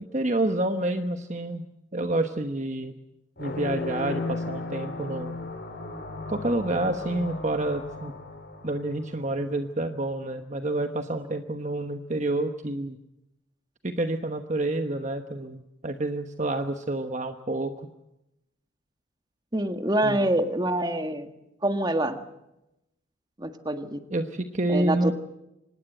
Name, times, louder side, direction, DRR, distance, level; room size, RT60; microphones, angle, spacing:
voice 1, 0.0-1.7 1.9-2.9 3.4-5.4 6.3-8.1 8.6-13.0 13.8-17.9 20.0-20.3 24.1-25.1, right 2 dB, 40° right, 7 dB, 1.1 m, -28 dB
sound 1, 3.4-9.5, left 2 dB, 55° left, 4.9 m, -35 dB
voice 2, 19.5-21.3 21.6-22.2 23.4-24.0 24.7-25.1, right 1 dB, 20° right, 7 dB, 1.7 m, -26 dB
25.5 x 19.5 x 8.0 m, 0.87 s
head